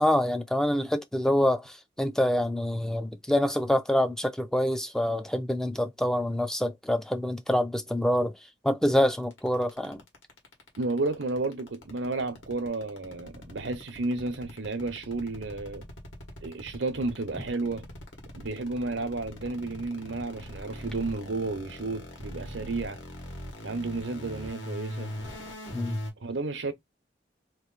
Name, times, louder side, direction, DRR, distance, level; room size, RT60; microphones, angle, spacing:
voice 1, 0.0-8.3 8.6-10.0 25.7-26.0, left 1 dB, 5° left, 0.3 m, -26 dB
sound 1, 9.1-26.1, equal, 90° left, 1.5 m, -40 dB
voice 2, 10.8-15.8 16.4-17.9 18.4-23.0 23.6-25.1 26.2-26.7, right 3 dB, 85° right, 0.8 m, -32 dB
3.0 x 2.6 x 3.9 m
head